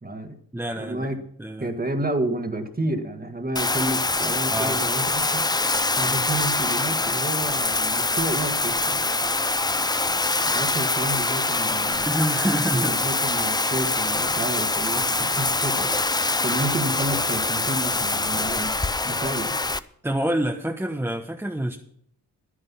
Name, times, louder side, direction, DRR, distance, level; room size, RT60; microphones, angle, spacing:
voice 1, 0.0-0.4 0.8-1.2 1.6-9.0 10.4-12.2 12.7-18.8 19.0-19.6, right 1 dB, 25° right, 6 dB, 1.8 m, -30 dB
voice 2, 0.5-1.1 1.4-1.7 4.5-4.9 12.0-13.0 20.0-21.8, right 1 dB, 5° right, 2 dB, 1.0 m, -27 dB
Bathtub (filling or washing), 3.5-19.8, left 3 dB, 10° left, 0.5 m, -24 dB
10.5 x 9.9 x 5.6 m, 0.68 s
cardioid pair, 65°, 35 cm